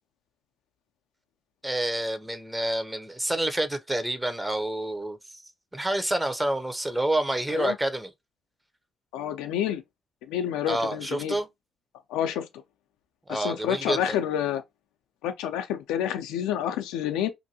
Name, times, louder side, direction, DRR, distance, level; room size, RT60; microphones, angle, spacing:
voice 1, 1.6-5.4 5.7-8.1 10.7-11.5 13.3-14.2, right 1 dB, 15° right, 0.6 m, -28 dB
voice 2, 9.1-9.8 10.3-11.4 12.1-12.5 13.3-14.6 15.2-17.3, left 10 dB, 85° left, 0.4 m, -28 dB
2.6 x 2.6 x 2.7 m
supercardioid pair, 55°, 0 cm